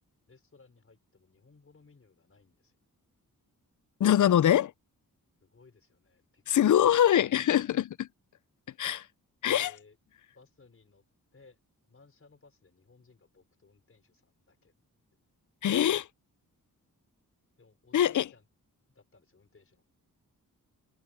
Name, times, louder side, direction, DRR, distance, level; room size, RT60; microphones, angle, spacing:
voice 1, 0.3-2.8 5.4-6.4 7.6-7.7 9.6-10.0 10.3-11.0 11.3-11.6 11.9-14.7 17.6-18.5 18.9-19.9, left 4 dB, 40° left, 5.4 m, -61 dB
voice 2, 4.0-4.7 6.5-8.1 8.8-9.1 9.4-9.7 15.6-16.1 17.9-18.3, left 10 dB, 60° left, 0.5 m, -23 dB
wide cardioid pair, 160°, 35 cm